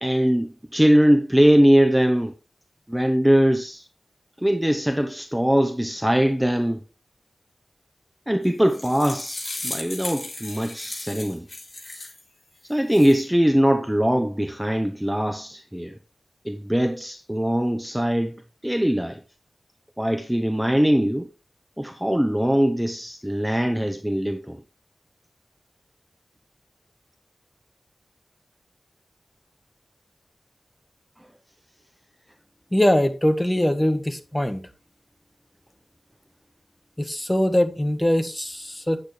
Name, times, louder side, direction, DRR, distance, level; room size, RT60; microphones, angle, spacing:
voice 1, 0.0-2.3 2.9-3.9 4.4-6.8 8.3-11.5 12.6-16.0 16.4-19.2 20.0-21.3 21.8-24.6, equal, 5° right, 0.8 m, -21 dB
sound 1, 8.4-12.2 12.7-13.2, left 2 dB, 35° left, 4.4 m, -35 dB
voice 2, 32.7-34.7 37.0-39.0, left 1 dB, 15° left, 1.5 m, -22 dB
10.0 x 8.6 x 3.3 m
wide cardioid pair, 70°, 0 cm